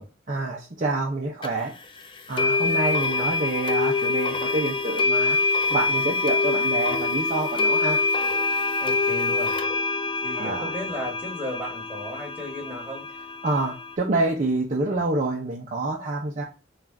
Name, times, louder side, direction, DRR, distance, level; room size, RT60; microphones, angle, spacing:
voice 1, 0.3-1.7 2.3-5.4 5.7-8.0 10.3-10.7 13.4-16.4, right 2 dB, 40° right, -2 dB, 0.6 m, -27 dB
sound 1, 1.4-1.5 2.4-13.9, left 3 dB, 25° left, 0.4 m, -25 dB
voice 2, 8.8-9.5 10.2-13.1, equal, 10° right, -3 dB, 1.4 m, -35 dB
3.8 x 2.4 x 4.4 m, 0.31 s
head